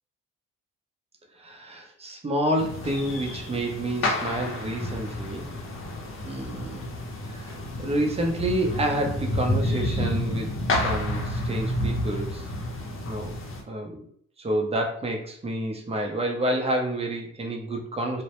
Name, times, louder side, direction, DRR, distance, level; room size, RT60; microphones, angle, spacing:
voice 1, 1.4-5.5 6.2-6.9 7.3-12.4 13.0-13.3 13.7-14.0 14.4-18.2, right 1 dB, 20° right, 2 dB, 0.6 m, -29 dB
sound 1, 2.6-13.6, left 1 dB, 45° left, 0.7 m, -30 dB
2.1 x 2.0 x 2.9 m, 0.65 s
cardioid pair, 90°, 30 cm